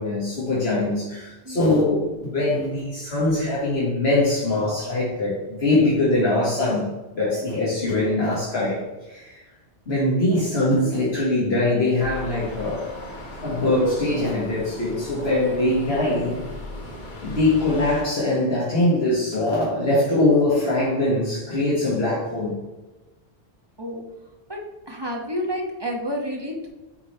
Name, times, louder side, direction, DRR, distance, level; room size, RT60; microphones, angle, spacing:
voice 1, 0.0-8.8 9.1-9.4 9.9-12.9 13.4-16.4 17.2-22.6, left 2 dB, 70° left, -8 dB, 1.9 m, -22 dB
voice 2, 1.4-2.3 23.8-24.0 24.5-24.6 24.9-26.7, equal, 25° right, 0 dB, 1.1 m, -30 dB
sound 1, 12.0-18.0, left 1 dB, 45° left, 1.4 m, -37 dB
8.2 x 3.3 x 4.3 m, 1.1 s
omnidirectional pair, 1.1 m